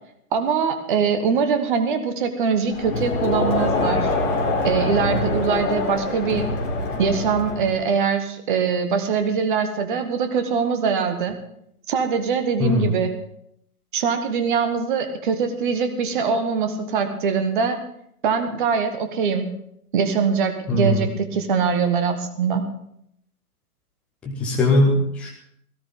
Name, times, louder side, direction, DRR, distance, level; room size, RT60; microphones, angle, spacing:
voice 1, 0.3-4.1 4.6-6.5 7.0-11.4 11.9-13.2 13.9-17.8 18.2-19.5 19.9-22.6, right 6 dB, 35° right, 8 dB, 1.3 m, -22 dB
Crowd, 2.7-7.9, left 2 dB, 40° left, 4.4 m, -24 dB
voice 2, 12.6-12.9 20.7-21.1 24.3-25.3, left 1 dB, 5° left, -3 dB, 0.5 m, -20 dB
18.0 x 13.5 x 3.7 m, 0.74 s
figure-of-eight pair, 125°, 46 cm